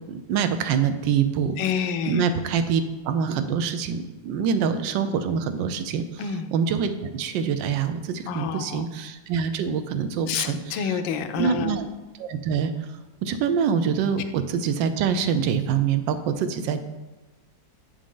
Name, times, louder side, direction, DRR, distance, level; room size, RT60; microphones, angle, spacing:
voice 1, 0.1-1.6 2.1-6.2 6.5-11.0 11.4-11.9 12.2-12.9 13.2-16.8, right 7 dB, 80° right, 9 dB, 1.2 m, -25 dB
voice 2, 1.6-2.2 6.2-6.5 8.3-8.9 10.3-11.8, left 7 dB, 80° left, 9 dB, 1.3 m, -28 dB
7.3 x 5.1 x 3.7 m, 1.1 s
omnidirectional pair, 2.0 m